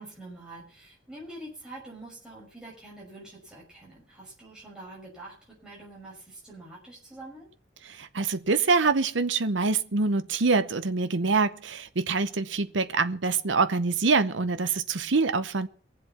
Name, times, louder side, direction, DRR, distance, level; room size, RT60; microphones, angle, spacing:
voice 1, 0.0-7.5, right 2 dB, 5° right, 6.0 m, -45 dB
voice 2, 7.8-15.7, right 4 dB, 80° right, 0.9 m, -25 dB
22.5 x 7.7 x 5.8 m
head